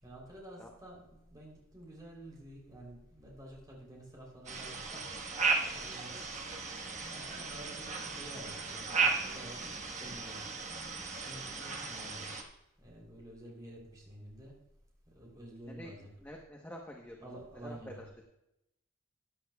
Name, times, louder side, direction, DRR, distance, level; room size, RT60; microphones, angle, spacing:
voice 1, 0.0-5.3 5.7-6.3 6.7-10.6 11.0-12.3 12.8-14.5 15.1-16.1 17.2-18.0, right 1 dB, 20° right, -3 dB, 3.2 m, -50 dB
sound 1, 4.5-12.4, right 4 dB, 35° right, 1.3 m, -36 dB
voice 2, 16.2-17.3 17.6-17.9, equal, 10° left, 0 dB, 0.9 m, -47 dB
14.5 x 10.0 x 2.3 m, 0.86 s
head